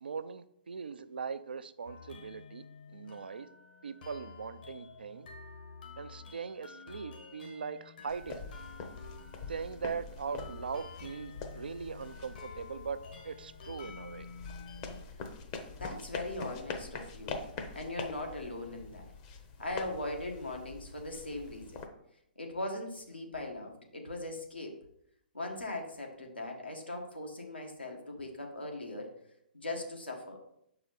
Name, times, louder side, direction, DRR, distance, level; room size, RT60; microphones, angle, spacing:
voice 1, 0.0-3.5 3.8-5.3 6.0-8.4 9.5-14.3, right 5 dB, 70° right, 12 dB, 0.4 m, -40 dB
sound 1, 1.9-15.0, left 4 dB, 60° left, 1.3 m, -50 dB
sound 2, 8.1-21.9, left 4 dB, 35° left, 0.8 m, -44 dB
voice 2, 15.8-17.4 17.7-19.1 19.6-21.8 22.4-24.8 25.3-29.1 29.5-30.4, left 2 dB, 85° left, 1 dB, 1.5 m, -39 dB
6.8 x 4.8 x 4.0 m, 0.75 s
figure-of-eight pair, 120°, 5 cm